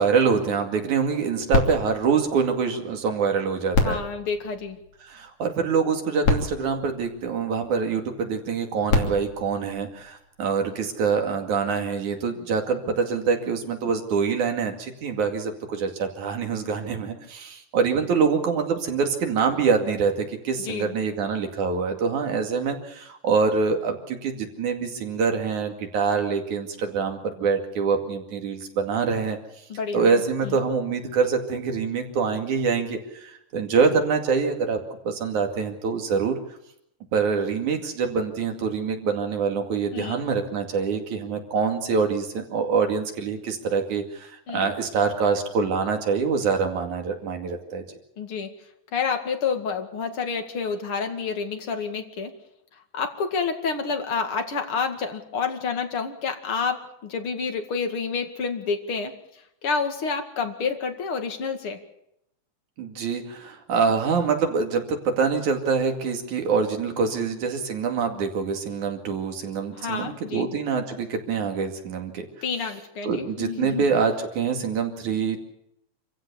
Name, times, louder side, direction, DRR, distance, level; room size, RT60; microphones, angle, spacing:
voice 1, 0.0-4.0 5.0-29.4 29.9-34.8 35.1-36.4 37.1-47.8 62.8-72.3 73.0-75.4, right 5 dB, 85° right, 4 dB, 3.8 m, -25 dB
sound 1, 1.5-3.2 3.7-5.3 6.0-6.1 6.2-7.8 8.6-10.5 11.2-11.3, left 3 dB, 65° left, 4.0 m, -28 dB
voice 2, 3.8-4.8 20.6-21.0 29.7-30.6 39.9-40.2 44.5-44.7 48.2-48.5 48.9-52.3 52.7-61.8 67.1-67.3 69.7-70.5 72.4-73.8, left 5 dB, 50° left, 5 dB, 2.8 m, -29 dB
26.5 x 15.5 x 7.0 m, 0.79 s
omnidirectional pair, 3.3 m